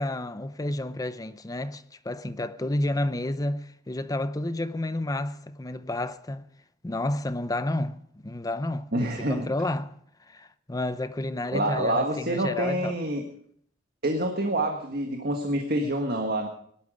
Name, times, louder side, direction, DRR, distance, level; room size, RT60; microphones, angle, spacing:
voice 1, 0.0-6.5 6.8-10.0 10.3-13.0, left 1 dB, 20° left, 0.6 m, -30 dB
voice 2, 8.9-9.5 11.5-13.2 14.0-16.5, right 1 dB, 55° right, 1.6 m, -27 dB
18.5 x 12.0 x 5.1 m
head